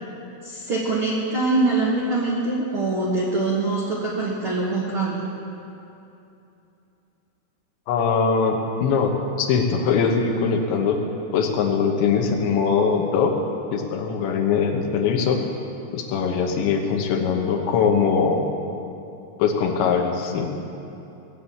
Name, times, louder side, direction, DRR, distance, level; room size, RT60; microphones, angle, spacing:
voice 1, 0.4-5.2, right 2 dB, 65° right, -6 dB, 1.3 m, -23 dB
voice 2, 7.9-11.0 11.3-13.4 13.7-15.4 15.9-18.5 19.4-20.5, left 6 dB, 80° left, 3 dB, 3.5 m, -21 dB
18.5 x 7.6 x 8.5 m, 2.8 s
omnidirectional pair, 5.2 m